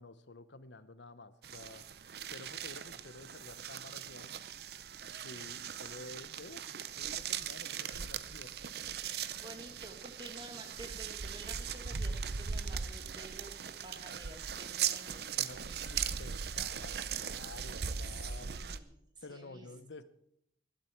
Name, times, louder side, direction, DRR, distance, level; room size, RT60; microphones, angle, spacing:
voice 1, 0.0-1.8 2.2-4.4 5.1-8.7 15.3-18.6 19.2-20.0, left 2 dB, 85° left, 14 dB, 0.9 m, -51 dB
sound 1, 1.4-18.8, right 7 dB, 65° right, 0.7 m, -39 dB
voice 2, 9.4-16.1 18.0-19.7, right 1 dB, 25° right, 3 dB, 2.1 m, -51 dB
19.0 x 12.0 x 4.6 m, 0.72 s
head